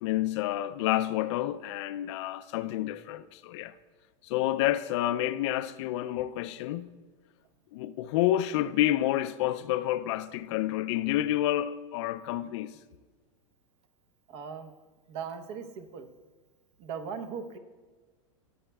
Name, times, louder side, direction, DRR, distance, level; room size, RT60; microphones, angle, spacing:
voice 1, 0.0-3.7 4.2-6.9 7.7-12.8, left 13 dB, 60° left, 0.4 m, -29 dB
voice 2, 14.3-14.7 15.1-16.1 16.8-17.6, right 6 dB, 50° right, 0.9 m, -38 dB
16.5 x 7.8 x 2.3 m
hypercardioid pair, 120°, 17 cm